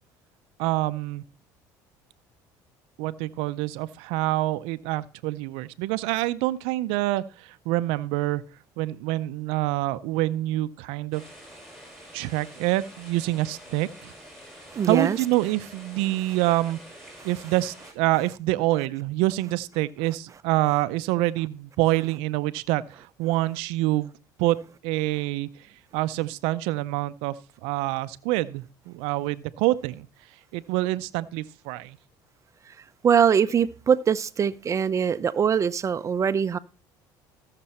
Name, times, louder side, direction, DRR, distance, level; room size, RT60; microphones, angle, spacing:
voice 1, 0.6-1.2 3.0-8.4 8.8-11.2 12.1-14.1 14.9-16.8 17.2-24.1 24.4-24.6 24.8-25.7 25.9-30.1 30.5-32.0, right 17 dB, 80° right, 0.5 m, -26 dB
sound 1, 11.1-17.9, equal, 5° left, 5.6 m, -47 dB
voice 2, 14.7-15.2 33.0-36.6, right 7 dB, 35° right, 0.6 m, -22 dB
14.5 x 6.7 x 4.3 m
supercardioid pair, 95°, 9 cm